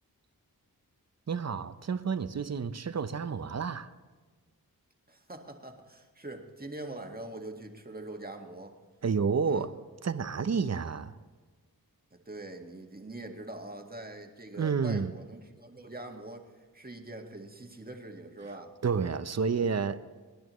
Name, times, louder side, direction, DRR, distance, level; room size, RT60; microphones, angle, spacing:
voice 1, 1.3-3.9 9.0-9.7 10.0-11.1 14.5-15.1 18.8-20.0, right 5 dB, 45° right, 12 dB, 0.8 m, -30 dB
voice 2, 5.1-8.8 9.4-9.7 12.1-18.8 19.5-19.8, right 2 dB, 25° right, 3 dB, 1.8 m, -43 dB
25.5 x 10.5 x 3.2 m, 1.4 s
cardioid pair, 45°, 36 cm